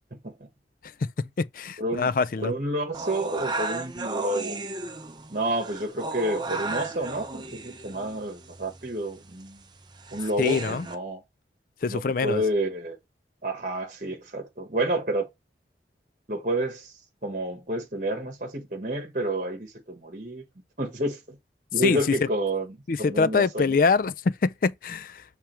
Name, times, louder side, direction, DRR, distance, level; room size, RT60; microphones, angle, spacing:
voice 1, 0.1-0.5 1.8-2.1 2.4-4.6 5.3-9.6 10.1-11.2 11.9-13.0 13.4-15.3 16.3-16.9 17.2-20.4 20.8-21.4 21.7-23.8, right 1 dB, 45° right, 1.3 m, -29 dB
voice 2, 1.0-2.5 10.4-10.9 11.8-12.4 21.8-22.0 22.9-25.2, left 4 dB, 50° left, 0.4 m, -24 dB
sound 1, 2.9-11.0, right 3 dB, 25° right, 0.7 m, -35 dB
7.3 x 3.5 x 4.4 m
head